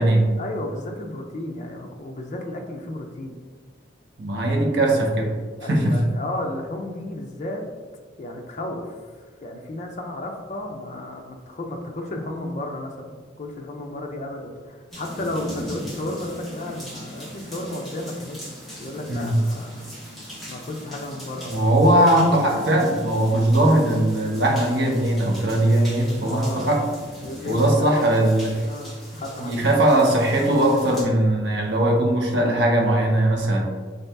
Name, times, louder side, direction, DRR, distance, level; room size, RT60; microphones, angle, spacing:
voice 1, 0.4-3.4 5.6-7.6 8.2-18.4 18.8-19.9 20.4-21.7 26.2-26.7 27.2-28.0 28.6-30.0, left 1 dB, 40° left, 2 dB, 0.5 m, -33 dB
voice 2, 4.2-5.4 5.7-6.0 19.1-19.4 21.5-26.8 27.5-28.7 29.4-33.6, right 1 dB, 60° right, 0 dB, 0.7 m, -20 dB
sound 1, 14.9-31.0, equal, ahead, 1.0 m, -40 dB
3.8 x 2.8 x 3.3 m, 1.5 s
head